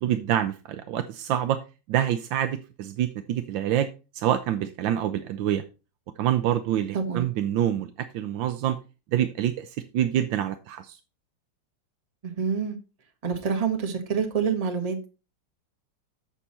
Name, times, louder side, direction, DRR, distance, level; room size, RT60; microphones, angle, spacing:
voice 1, 0.0-1.6 1.9-3.9 4.1-5.6 6.2-8.8 9.1-11.0, right 11 dB, 80° right, 1.4 m, -26 dB
voice 2, 6.9-7.3 12.2-12.8 13.2-15.1, right 6 dB, 25° right, 1.0 m, -27 dB
7.2 x 6.9 x 4.2 m
omnidirectional pair, 2.1 m